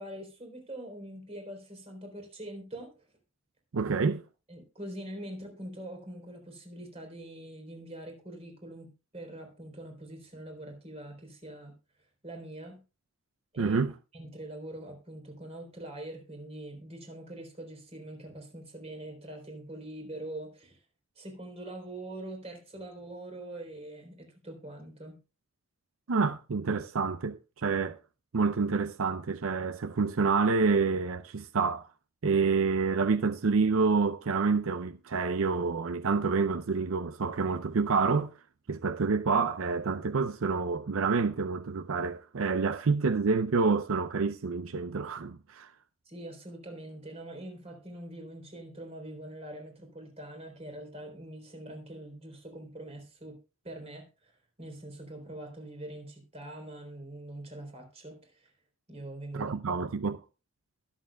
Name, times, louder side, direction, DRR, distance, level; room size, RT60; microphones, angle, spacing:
voice 1, 0.0-2.9 4.5-11.8 12.2-12.8 13.5-13.8 14.1-20.8 21.2-25.2 46.1-53.4 53.6-54.3 54.6-58.5 58.9-59.5, right 1 dB, 30° right, 3.8 m, -43 dB
voice 2, 3.7-4.2 13.6-13.9 26.1-28.0 28.3-31.9 32.2-38.3 38.7-45.7 59.3-60.2, right 4 dB, 85° right, 0.6 m, -28 dB
22.0 x 7.4 x 2.3 m
head